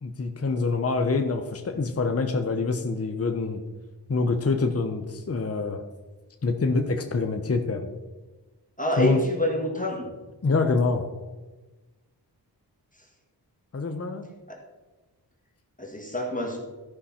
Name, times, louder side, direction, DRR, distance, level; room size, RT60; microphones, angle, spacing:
voice 1, 0.0-3.6 4.1-5.8 6.4-7.9 9.0-9.2 10.4-11.1 13.7-14.3, left 3 dB, 35° left, 5 dB, 0.9 m, -25 dB
voice 2, 8.8-10.1 14.5-14.6 15.8-16.6, left 1 dB, 20° left, 0 dB, 1.7 m, -27 dB
13.0 x 5.5 x 4.3 m, 1.2 s
cardioid pair, 45°, 42 cm